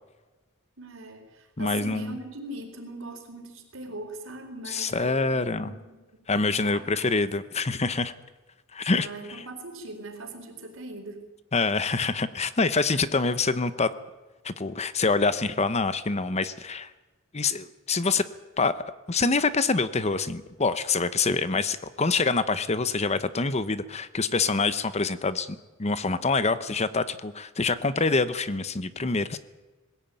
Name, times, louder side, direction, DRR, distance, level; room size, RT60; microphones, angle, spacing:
voice 1, 0.8-6.0 6.3-7.2 8.9-11.2, right 2 dB, 70° right, 4 dB, 4.3 m, -41 dB
voice 2, 1.6-2.2 4.7-5.7 6.3-8.1 8.7-9.1 11.5-13.9 14.4-16.9 17.3-18.2 18.6-18.8 19.1-29.4, left 4 dB, 30° left, 13 dB, 0.9 m, -26 dB
21.0 x 16.0 x 9.2 m, 1.2 s
head